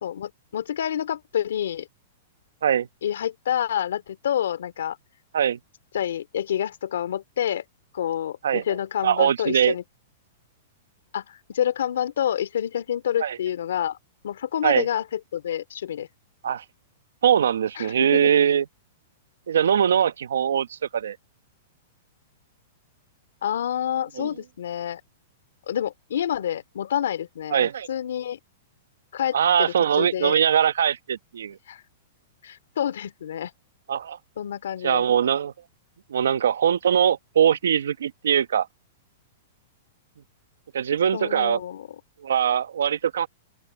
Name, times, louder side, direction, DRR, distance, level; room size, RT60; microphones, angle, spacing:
voice 1, 0.0-1.9 3.0-5.0 5.9-7.6 7.9-9.8 11.1-14.0 14.2-16.1 17.7-18.3 23.4-25.0 25.7-28.4 29.1-30.3 31.7-31.8 32.4-33.5 34.4-35.0 41.1-41.9, left 10 dB, 80° left, 2.9 m, -28 dB
voice 2, 9.0-9.7 13.2-13.4 14.6-14.9 16.4-16.6 17.2-18.6 19.5-21.2 24.2-24.3 27.5-27.9 29.3-31.6 33.9-34.2 34.8-35.5 36.1-38.7 40.7-41.6 42.2-43.3, right 8 dB, 90° right, 1.2 m, -21 dB
open air
hypercardioid pair, 150°, 0 cm